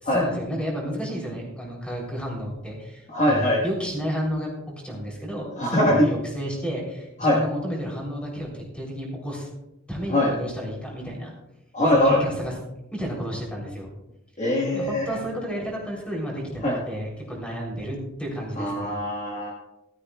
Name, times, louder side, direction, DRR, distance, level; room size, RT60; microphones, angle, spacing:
voice 1, 0.0-4.5 4.8-9.5 9.9-11.3 11.9-12.5 12.9-13.9 14.7-19.0, equal, 5° left, -2 dB, 3.2 m, -31 dB
voice 2, 3.1-3.6 5.6-6.1 7.2-7.4 10.1-10.3 11.7-12.2 14.4-15.1 16.6-16.8 18.6-19.5, left 1 dB, 35° left, -2 dB, 1.4 m, -21 dB
15.5 x 12.5 x 2.3 m, 0.93 s
head